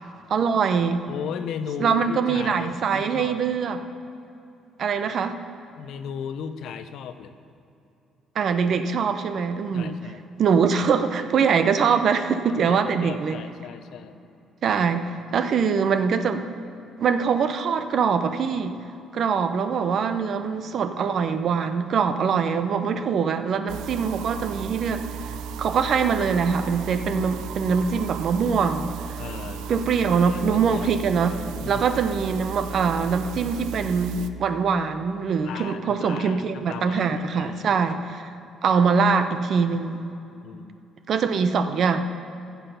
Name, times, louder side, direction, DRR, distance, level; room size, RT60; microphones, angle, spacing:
voice 1, 0.3-1.1 1.8-3.8 4.8-5.4 8.4-10.0 10.4-13.4 14.6-16.4 17.0-18.8 19.1-25.1 25.6-28.9 29.7-31.4 31.7-38.3 38.6-40.0 41.1-42.0, right 6 dB, 50° right, 9 dB, 0.6 m, -23 dB
voice 2, 1.1-3.4 5.8-7.3 9.7-10.2 12.6-14.2 29.2-31.0 31.6-31.9 35.4-37.8 40.4-40.8, left 7 dB, 70° left, 10 dB, 0.6 m, -36 dB
sound 1, 23.7-34.3, right 7 dB, 85° right, 0.5 m, -35 dB
14.5 x 7.1 x 5.6 m, 2.7 s
cardioid pair, 140°, 0 cm